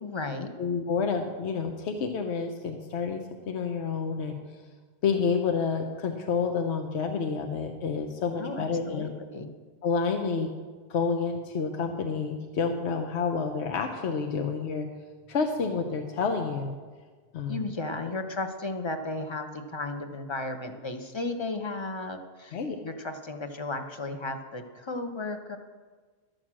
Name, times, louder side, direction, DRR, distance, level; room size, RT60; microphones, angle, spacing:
voice 1, 0.0-0.5 8.4-9.5 17.5-25.6, left 2 dB, 30° left, 6 dB, 0.8 m, -34 dB
voice 2, 0.6-4.4 5.0-9.1 9.8-10.5 10.9-14.9 15.3-16.8 17.3-17.6 22.5-22.8, left 5 dB, 75° left, 5 dB, 1.1 m, -29 dB
12.0 x 6.5 x 7.5 m, 1.4 s
omnidirectional pair, 1.1 m